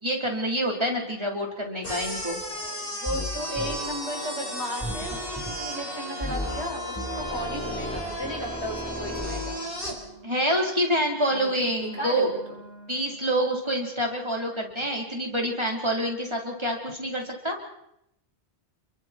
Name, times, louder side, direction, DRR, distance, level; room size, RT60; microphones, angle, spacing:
voice 1, 0.0-2.4 10.2-12.3 12.9-17.6, equal, 25° right, -1 dB, 4.8 m, -27 dB
sound 1, 1.8-10.0, equal, 60° left, 4.7 m, -35 dB
voice 2, 2.5-9.6 11.3-11.6 11.9-12.6, equal, 90° left, 0 dB, 6.9 m, -35 dB
sound 2, 3.1-3.3 3.6-3.8 4.8-5.5 6.2-6.7 7.0-9.4, equal, 10° left, 4.5 m, -34 dB
sound 3, 3.3-13.6, right 1 dB, 70° right, 2.7 m, -43 dB
30.0 x 23.0 x 4.8 m, 0.78 s
omnidirectional pair, 1.1 m